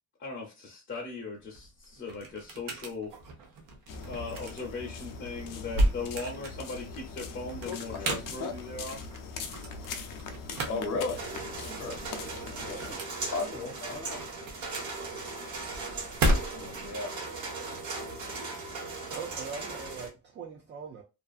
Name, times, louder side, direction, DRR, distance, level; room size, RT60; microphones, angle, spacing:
voice 1, 0.2-3.1 4.0-9.0 10.5-10.6 15.8-16.1 16.5-17.0, left 3 dB, 40° left, 0.6 m, -39 dB
sound 1, 1.4-16.9, right 1 dB, 80° right, 0.8 m, -35 dB
sound 2, 3.9-13.0, left 5 dB, 85° left, 0.5 m, -41 dB
voice 2, 10.7-11.3 11.6-12.0 12.5-13.0 13.3-14.2 16.7-17.1, left 3 dB, 65° left, 0.9 m, -35 dB
sound 3, 11.1-20.1, right 3 dB, 60° right, 1.1 m, -38 dB
voice 3, 19.1-21.0, right 6 dB, 35° right, 0.4 m, -41 dB
2.6 x 2.4 x 2.3 m
wide cardioid pair, 165°, 32 cm